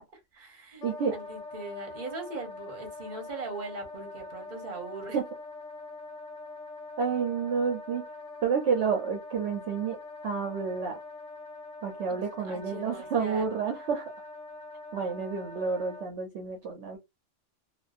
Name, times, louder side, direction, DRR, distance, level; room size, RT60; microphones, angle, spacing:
voice 1, 0.1-5.2 12.1-13.5, right 3 dB, 40° right, 1.0 m, -41 dB
Wind instrument woodwind instrument, 0.8-16.1, left 3 dB, 80° left, 1.0 m, -43 dB
voice 2, 0.8-1.1 5.1-5.2 7.0-8.0 8.4-10.0 10.2-11.0 11.8-14.1 14.9-17.0, right 6 dB, 70° right, 0.9 m, -29 dB
2.5 x 2.5 x 2.3 m
omnidirectional pair, 1.3 m